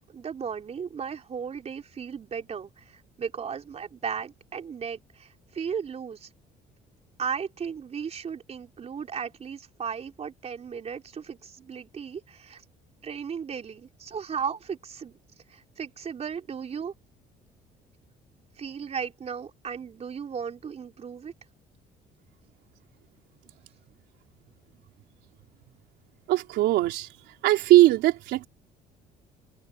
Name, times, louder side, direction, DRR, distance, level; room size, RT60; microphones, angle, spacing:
voice 1, 0.1-6.3 7.2-12.6 13.0-15.1 15.5-16.9 18.6-21.3, right 7 dB, 40° right, 4.2 m, -35 dB
voice 2, 26.3-27.2 27.4-28.5, right 16 dB, 85° right, 3.9 m, -20 dB
cardioid pair, 110°, 17 cm